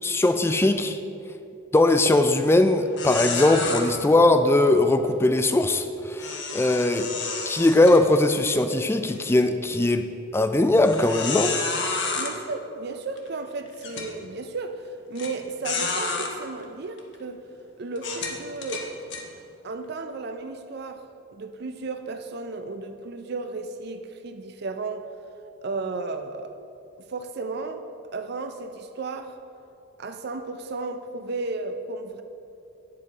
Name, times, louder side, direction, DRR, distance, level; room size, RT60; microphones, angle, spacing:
voice 1, 0.0-1.0 1.7-7.1 7.5-10.1 10.3-11.5, left 2 dB, 10° left, 0.3 m, -20 dB
sound 1, 1.9-2.2 2.5-2.6 3.0-3.8 6.2-8.5 9.0-9.1 9.7-9.8 10.8-12.3 13.2-13.3 13.8-14.1 15.2-15.3 15.6-16.3 17.0-17.1 18.0-19.2, left 4 dB, 60° left, 1.0 m, -30 dB
voice 2, 12.2-17.4 17.8-19.1 19.6-21.0 21.3-25.1 25.6-26.5 27.1-27.9 28.1-29.4 30.0-32.2, right 3 dB, 50° right, 0.5 m, -34 dB
8.9 x 7.6 x 4.0 m
head